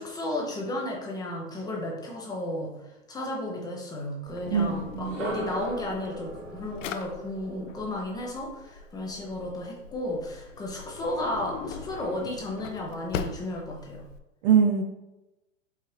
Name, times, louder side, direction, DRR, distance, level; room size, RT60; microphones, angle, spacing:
voice 1, 0.0-14.0, left 1 dB, 10° left, -1 dB, 0.5 m, -33 dB
Drawer open or close, 4.3-14.2, left 6 dB, 75° left, 0.6 m, -41 dB
voice 2, 4.5-5.1 14.4-14.8, right 7 dB, 45° right, 5 dB, 0.4 m, -22 dB
sound 1, 5.0-9.0, right 2 dB, 80° right, 1.0 m, -40 dB
4.7 x 2.8 x 3.1 m, 0.98 s
hypercardioid pair, 120°, 39 cm